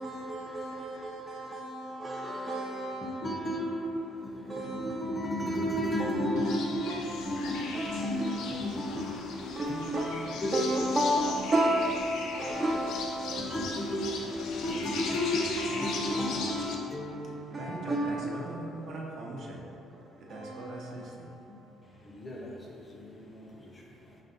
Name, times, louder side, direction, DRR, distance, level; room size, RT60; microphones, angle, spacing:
voice 1, 0.0-3.3 4.5-5.2 6.0-7.3 7.7-8.4 9.6-13.6 14.4-14.6 15.1-15.3 15.6-16.8 17.5-18.5 20.3-20.9, right 1 dB, 30° right, -3 dB, 0.4 m, -33 dB
voice 2, 3.0-10.1 10.4-11.4 13.4-17.8 18.1-18.2 21.5-21.6 22.0-23.8, left 1 dB, 25° left, -1 dB, 0.5 m, -34 dB
sound 1, 6.4-16.8, left 4 dB, 75° left, 0.4 m, -39 dB
voice 3, 17.5-19.7 20.2-21.3, right 2 dB, 60° right, -3 dB, 0.7 m, -41 dB
5.1 x 2.1 x 3.8 m, 2.9 s
cardioid pair, 130°, 0 cm